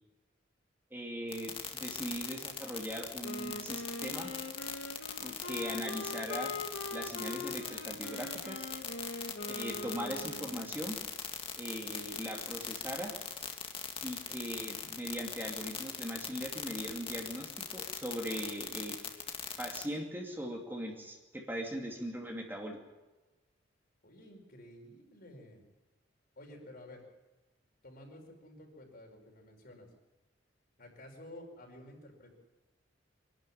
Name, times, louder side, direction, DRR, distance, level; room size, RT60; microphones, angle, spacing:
voice 1, 0.9-4.3 5.2-6.6 6.9-8.7 9.5-11.0 11.6-13.2 14.0-19.0 19.6-22.8, equal, 10° right, 1 dB, 2.5 m, -40 dB
sound 1, 1.3-19.8, left 7 dB, 30° left, 1.9 m, -40 dB
Wind instrument woodwind instrument, 3.2-10.9, left 2 dB, 75° left, 2.1 m, -42 dB
voice 2, 24.0-25.6 26.4-27.0 27.8-29.9 30.8-32.3, left 1 dB, 55° left, 1 dB, 5.0 m, -52 dB
24.0 x 12.0 x 10.0 m, 1.1 s
head